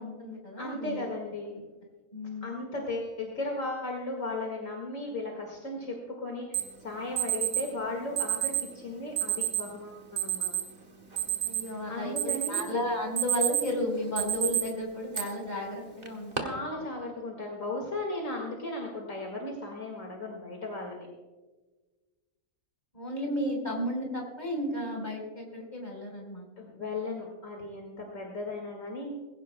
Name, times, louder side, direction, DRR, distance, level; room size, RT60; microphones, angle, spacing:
voice 1, 0.0-1.1 2.1-2.6 11.4-16.6 22.9-26.5, left 1 dB, 30° left, 0 dB, 4.3 m, -33 dB
voice 2, 0.6-1.6 2.4-10.5 11.9-12.9 16.4-21.1 26.6-29.1, left 2 dB, 60° left, 0 dB, 2.3 m, -36 dB
Alarm, 6.5-6.6 7.2-7.6 8.2-8.6 9.2-9.6 10.2-10.6 11.0-11.8 12.2-12.7 13.0-13.7 14.2-14.6 15.1-15.2 16.0-16.4, right 11 dB, 30° right, 1.4 m, -28 dB
21.0 x 16.0 x 2.2 m, 1.3 s
omnidirectional pair, 1.6 m